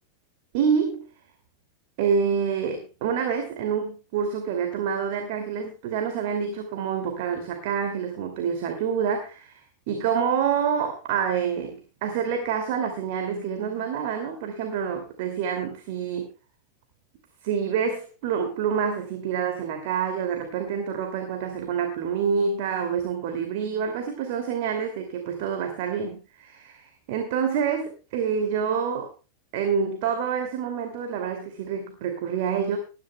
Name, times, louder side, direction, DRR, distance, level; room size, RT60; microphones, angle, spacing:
voice 1, 0.5-1.0 2.0-16.3 17.4-29.1 29.5-32.8, right 7 dB, 50° right, 4 dB, 2.6 m, -27 dB
20.0 x 12.0 x 2.3 m, 0.31 s
figure-of-eight pair, 90°, 0 cm